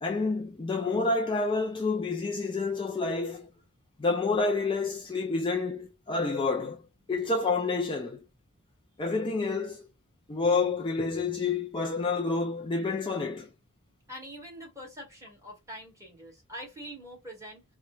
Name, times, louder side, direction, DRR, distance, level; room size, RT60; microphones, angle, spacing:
voice 1, 0.0-3.5 4.0-6.8 7.1-8.2 9.0-9.8 10.3-13.5, left 3 dB, 20° left, 0.4 m, -28 dB
voice 2, 14.1-17.6, equal, 15° right, 1.9 m, -44 dB
4.2 x 2.2 x 2.3 m
head